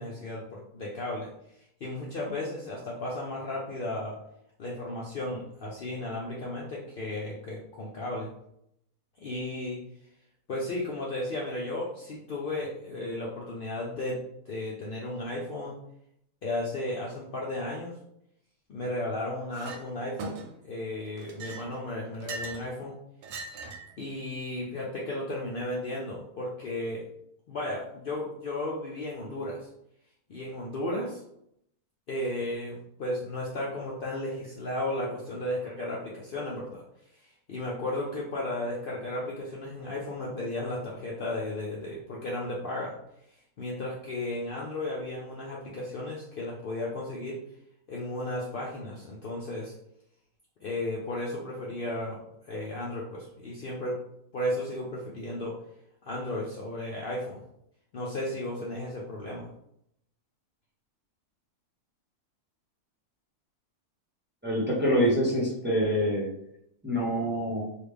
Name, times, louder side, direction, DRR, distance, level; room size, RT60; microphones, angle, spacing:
voice 1, 0.0-4.2 4.6-8.3 9.2-9.8 10.5-15.7 16.4-18.0 18.7-20.4 20.6-22.9 23.4-23.5 24.0-27.0 27.5-29.7 30.3-31.2 32.1-36.8 37.1-43.0 43.3-47.4 47.9-49.7 50.6-52.2 52.4-54.0 54.3-55.5 56.0-57.4 57.9-59.5, left 1 dB, 85° left, -4 dB, 0.4 m, -34 dB
Chink clink, 19.5-19.8 20.2-20.7 21.2-22.7 23.2-23.9, right 3 dB, 90° right, 1.2 m, -40 dB
voice 2, 64.4-66.3 66.8-67.6, equal, 10° right, -6 dB, 0.6 m, -25 dB
3.2 x 2.3 x 3.4 m, 0.76 s
omnidirectional pair, 1.6 m